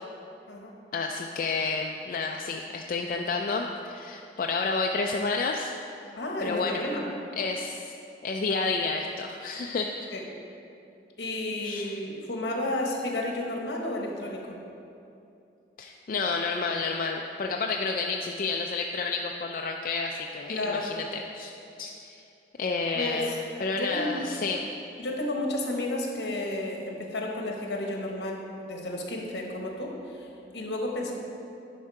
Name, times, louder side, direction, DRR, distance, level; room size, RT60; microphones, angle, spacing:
voice 1, 0.9-5.7 6.4-6.8 7.4-7.9 8.2-10.1 11.6-12.0 15.8-21.5 21.8-22.2 22.6-24.6, left 4 dB, 50° left, 1 dB, 0.3 m, -30 dB
voice 2, 6.2-7.0 10.1-10.2 11.2-14.6 20.5-20.9 22.9-23.2 23.7-24.2 25.0-31.1, left 1 dB, 75° left, 0 dB, 1.1 m, -32 dB
11.0 x 3.7 x 4.7 m, 2.7 s
head